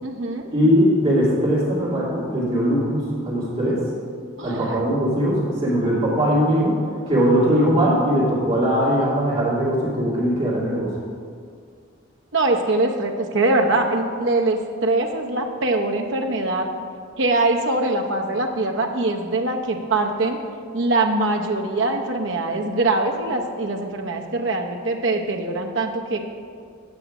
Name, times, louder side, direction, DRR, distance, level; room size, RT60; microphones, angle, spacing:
voice 1, 0.0-0.5 4.4-4.8 12.3-16.7 17.2-20.4 20.7-26.2, right 2 dB, 60° right, 2 dB, 0.8 m, -23 dB
voice 2, 0.5-3.8 4.4-6.8 7.1-10.9, equal, 25° right, -7 dB, 2.4 m, -20 dB
8.5 x 6.3 x 4.9 m, 2.1 s
head